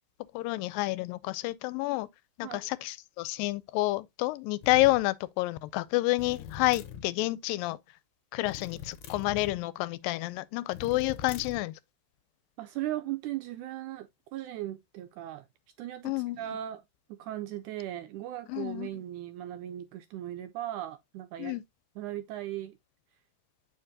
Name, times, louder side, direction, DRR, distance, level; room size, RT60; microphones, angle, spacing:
voice 1, 0.3-2.1 2.4-7.8 8.3-11.7 16.0-16.4 18.5-18.9 21.4-21.6, left 19 dB, 90° left, 2.3 m, -29 dB
sound 1, 4.6-5.0 6.2-7.1 8.4-9.6 10.7-11.7, left 8 dB, 70° left, 2.2 m, -42 dB
voice 2, 12.6-15.4 15.8-16.8 17.1-21.6 22.0-22.8, right 13 dB, 80° right, 1.8 m, -38 dB
8.8 x 5.0 x 2.6 m
omnidirectional pair, 4.0 m